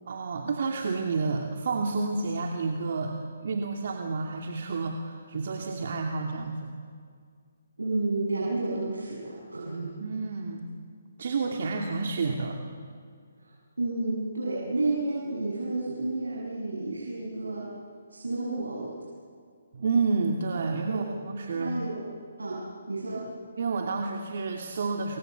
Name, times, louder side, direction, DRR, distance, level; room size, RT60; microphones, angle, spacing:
voice 1, 0.1-3.1 3.4-6.7 10.0-10.7 11.2-12.6 19.7-21.7 23.6-25.2, right 4 dB, 60° right, 2 dB, 2.6 m, -30 dB
voice 2, 7.8-10.0 13.4-17.7 18.1-18.9 20.9-21.1 21.5-22.0 22.4-23.3, right 2 dB, 90° right, -5 dB, 7.4 m, -31 dB
28.5 x 23.5 x 8.2 m, 2.1 s
hypercardioid pair, 145°, 0 cm